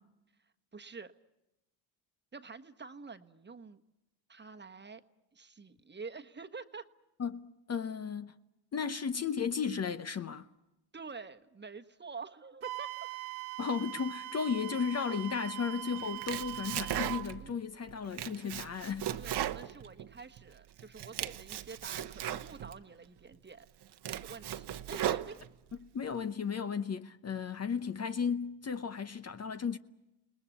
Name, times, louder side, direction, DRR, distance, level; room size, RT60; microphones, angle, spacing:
voice 1, 0.7-1.1 2.3-3.8 4.3-5.0 5.3-6.9 10.9-13.1 17.4-17.6 19.2-23.7 24.0-25.4, right 5 dB, 20° right, 1.3 m, -47 dB
voice 2, 7.2-8.3 8.7-10.5 13.6-19.1 25.8-29.8, left 6 dB, 30° left, 0.9 m, -35 dB
Wind instrument woodwind instrument, 12.6-17.3, right 15 dB, 85° right, 1.8 m, -42 dB
Domestic sounds home sounds, 16.0-17.5 17.9-20.4 20.8-22.8 23.3-23.4 23.8-25.8, right 11 dB, 50° right, 1.2 m, -37 dB
29.5 x 19.5 x 8.4 m
supercardioid pair, 80°, 49 cm